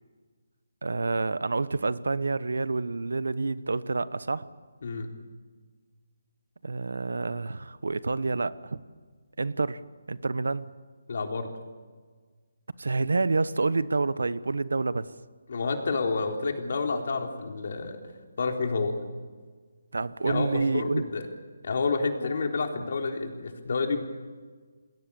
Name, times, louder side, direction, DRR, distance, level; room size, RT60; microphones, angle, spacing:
voice 1, 0.8-4.5 6.6-8.8 9.4-9.8 10.1-10.7 12.8-15.1 19.9-21.0 22.8-22.9, right 3 dB, 85° right, 16 dB, 1.1 m, -28 dB
voice 2, 11.1-11.5 15.5-18.0 18.4-19.0 20.3-21.3 21.6-24.1, left 4 dB, 55° left, 3 dB, 3.8 m, -29 dB
29.0 x 20.5 x 7.1 m, 1.5 s
hypercardioid pair, 165°, 0 cm